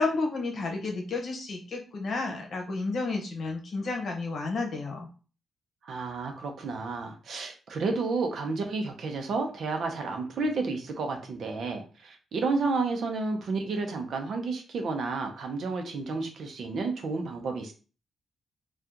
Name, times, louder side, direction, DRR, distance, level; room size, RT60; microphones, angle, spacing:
voice 1, 0.0-5.1, left 3 dB, 50° left, 1 dB, 0.9 m, -31 dB
voice 2, 5.8-17.7, right 3 dB, 60° right, 4 dB, 0.7 m, -31 dB
2.8 x 2.4 x 3.6 m, 0.35 s
wide cardioid pair, 160°, 0 cm